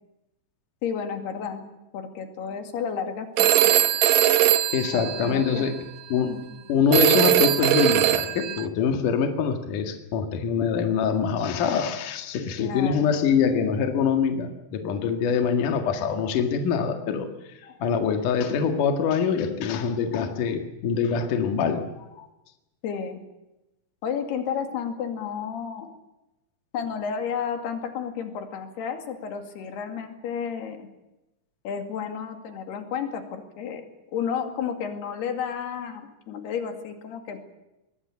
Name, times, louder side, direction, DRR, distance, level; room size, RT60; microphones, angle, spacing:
voice 1, 0.8-1.7 1.9-3.7 4.9-5.7 6.2-6.4 12.6-13.1 22.8-23.2 24.0-25.9 26.7-30.9 31.6-33.8 34.1-37.4, left 7 dB, 85° left, 6 dB, 4.4 m, -32 dB
Telephone, 3.4-5.7 6.9-8.6, right 12 dB, 75° right, 1.6 m, -21 dB
voice 2, 4.7-5.8 6.1-6.4 6.7-17.3 17.6-22.3, left 6 dB, 60° left, 5 dB, 3.3 m, -24 dB
23.5 x 21.0 x 8.6 m, 0.95 s
omnidirectional pair, 4.5 m